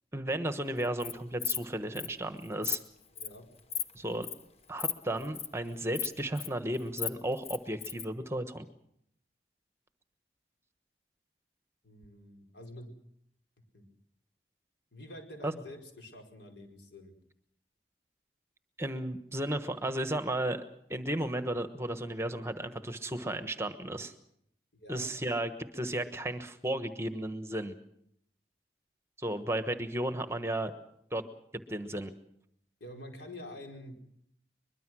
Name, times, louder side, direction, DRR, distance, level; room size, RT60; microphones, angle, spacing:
voice 1, 0.1-2.8 3.9-4.3 4.7-8.6 15.4-15.5 18.8-20.6 20.9-24.1 24.9-27.7 29.2-30.7 31.1-31.2 31.7-32.1, right 1 dB, 15° right, 9 dB, 1.2 m, -34 dB
Insect, 0.8-1.1 1.4-1.6 2.0-2.1 2.4-2.8 3.2-3.4 3.7-3.9 4.2-4.4 4.8-4.9 5.2-5.5 5.9-6.5 6.8-8.1, left 7 dB, 35° left, 1.2 m, -34 dB
voice 2, 3.1-3.4 11.8-12.9 13.7-13.9 14.9-17.1 24.7-25.1 32.8-34.0, left 1 dB, 90° left, 3 dB, 4.9 m, -47 dB
23.0 x 22.0 x 6.2 m, 0.73 s
head